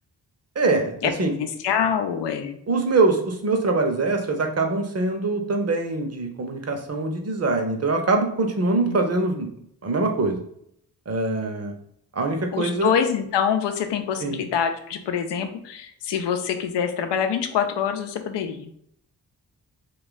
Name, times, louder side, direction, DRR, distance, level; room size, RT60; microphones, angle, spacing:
voice 1, 0.6-1.4 2.7-9.5 9.8-10.4 11.1-11.7 12.1-12.9 14.2-14.4, right 3 dB, 35° right, 5 dB, 0.8 m, -23 dB
voice 2, 1.4-2.6 8.9-9.0 12.5-18.7, left 8 dB, 80° left, 7 dB, 0.6 m, -25 dB
2.4 x 2.4 x 3.9 m, 0.71 s
supercardioid pair, 45°, 41 cm